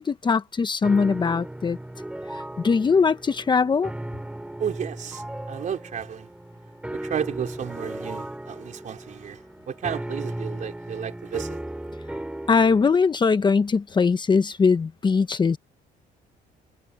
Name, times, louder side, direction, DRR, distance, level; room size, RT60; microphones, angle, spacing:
voice 1, 0.0-1.8 2.6-3.9 12.5-15.6, left 5 dB, 25° left, 1.1 m, -21 dB
sound 1, 0.8-12.8, right 1 dB, 5° right, 2.8 m, -36 dB
voice 2, 4.6-5.2 5.5-6.3 6.9-9.4 9.7-11.6, right 8 dB, 50° right, 4.4 m, -32 dB
cardioid pair, 110°, 17 cm